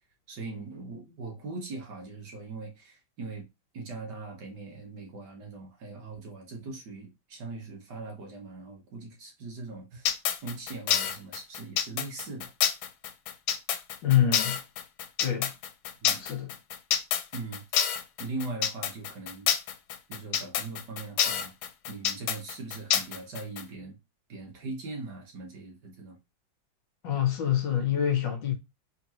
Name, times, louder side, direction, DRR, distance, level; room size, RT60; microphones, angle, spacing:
voice 1, 0.3-3.5 3.7-10.2 10.4-12.5 16.0-16.2 17.3-17.6 18.2-19.5 20.1-21.5 21.9-24.0 24.3-26.2, right 3 dB, 60° right, 1.8 m, -40 dB
sound 1, 10.1-23.6, left 9 dB, 90° left, 1.4 m, -28 dB
voice 2, 14.0-14.6 15.2-15.5 16.2-16.5 27.0-28.5, left 10 dB, 70° left, 1.6 m, -26 dB
3.7 x 3.6 x 3.0 m
omnidirectional pair, 2.2 m